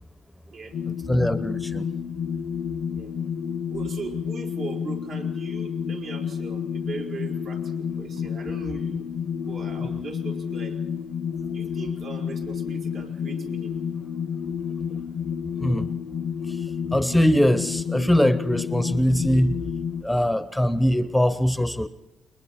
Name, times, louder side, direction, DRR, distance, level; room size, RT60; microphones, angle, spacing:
sound 1, 0.7-20.0, left 7 dB, 70° left, 0.8 m, -30 dB
voice 1, 1.1-1.9 8.2-8.3 15.6-15.9 16.5-19.6 20.0-21.9, equal, 5° left, 12 dB, 0.9 m, -22 dB
voice 2, 3.7-9.0 9.4-10.8 11.5-13.7, right 4 dB, 70° right, 0 dB, 5.1 m, -39 dB
29.0 x 22.0 x 4.3 m, 0.98 s
cardioid pair, 90°, 0 cm